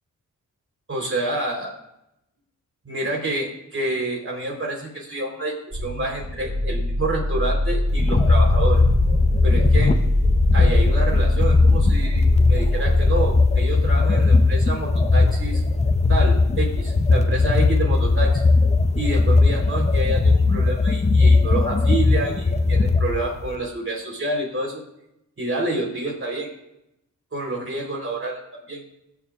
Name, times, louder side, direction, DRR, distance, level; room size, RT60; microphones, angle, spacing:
voice 1, 0.9-1.7 2.9-8.8 9.4-9.9 10.5-15.6 16.1-18.4 19.0-24.8 25.4-26.5 27.3-28.4 28.7-28.8, right 2 dB, 45° right, -1 dB, 3.7 m, -28 dB
sound 1, 5.7-13.9, left 1 dB, 15° right, 1.9 m, -23 dB
sound 2, 7.9-23.6, left 3 dB, 20° left, 0.6 m, -18 dB
21.0 x 7.2 x 2.4 m, 0.84 s
wide cardioid pair, 105°, 32 cm